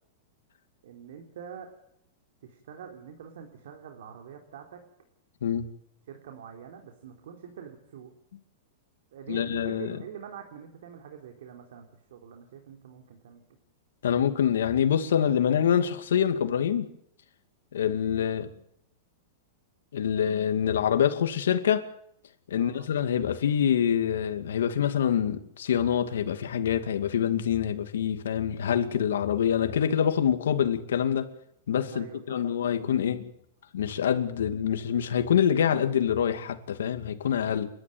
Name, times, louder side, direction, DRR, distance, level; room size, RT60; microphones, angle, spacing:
voice 1, 0.8-1.7 2.4-4.8 6.1-8.1 9.1-11.9 12.1-13.4 22.5-22.9 31.9-32.5, right 8 dB, 75° right, 3.8 m, -44 dB
voice 2, 9.3-10.0 14.0-16.9 17.7-18.5 19.9-21.9 22.5-31.3 31.7-33.2 33.7-37.7, left 8 dB, 90° left, 2.4 m, -25 dB
29.5 x 12.5 x 9.3 m
supercardioid pair, 150°, 0 cm